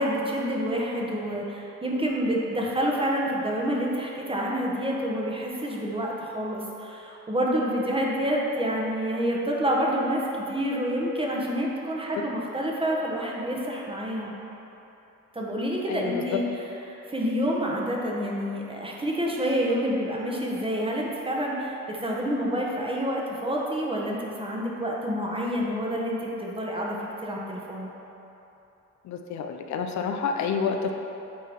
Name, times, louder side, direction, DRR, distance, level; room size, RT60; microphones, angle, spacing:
voice 1, 0.0-14.3 15.3-16.4 16.9-27.0 27.2-27.9, equal, 20° right, -3 dB, 1.2 m, -28 dB
voice 2, 15.9-16.2 29.0-30.9, left 6 dB, 65° left, 5 dB, 0.6 m, -29 dB
8.5 x 3.8 x 4.6 m, 3.0 s
cardioid pair, 90°, 30 cm